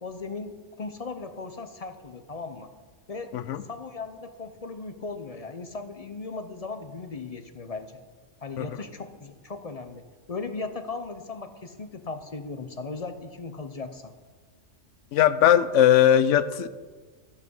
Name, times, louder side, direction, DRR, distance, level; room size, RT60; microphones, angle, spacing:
voice 1, 0.0-2.7 3.1-3.3 3.6-7.9 8.4-14.1, left 4 dB, 35° left, 9 dB, 0.7 m, -37 dB
voice 2, 15.1-16.7, left 10 dB, 85° left, 15 dB, 1.0 m, -19 dB
14.0 x 8.4 x 5.4 m, 1.4 s
omnidirectional pair, 1.2 m